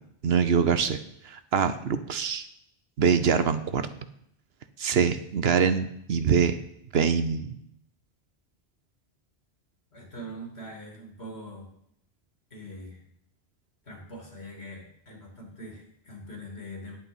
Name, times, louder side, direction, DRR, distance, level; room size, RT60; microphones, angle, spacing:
voice 1, 0.2-1.0 1.2-2.5 3.0-3.9 4.8-6.6 6.9-7.5, right 6 dB, 65° right, 11 dB, 1.0 m, -24 dB
voice 2, 9.9-11.7 12.5-13.0 13.8-17.0, equal, 65° left, 0 dB, 3.2 m, -42 dB
9.9 x 8.6 x 5.5 m, 0.74 s
omnidirectional pair, 1.1 m